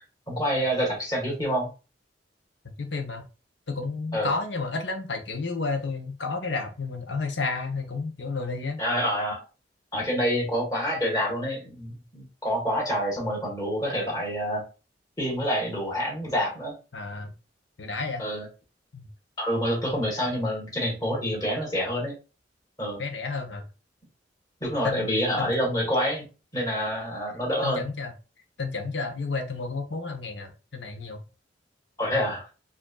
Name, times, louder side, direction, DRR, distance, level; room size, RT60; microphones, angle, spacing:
voice 1, 0.3-1.7 4.1-4.3 8.8-9.4 9.9-14.6 15.2-16.7 18.2-18.5 19.4-22.1 22.8-23.0 24.6-26.3 26.5-27.9 32.0-32.4, equal, 20° left, -4 dB, 1.9 m, -27 dB
voice 2, 2.8-3.3 3.7-8.8 16.9-17.4 17.8-18.2 18.9-19.1 23.0-23.6 24.8-25.5 27.6-28.1 28.6-31.2, left 4 dB, 70° left, 6 dB, 0.8 m, -31 dB
4.9 x 2.6 x 2.2 m, 0.32 s
head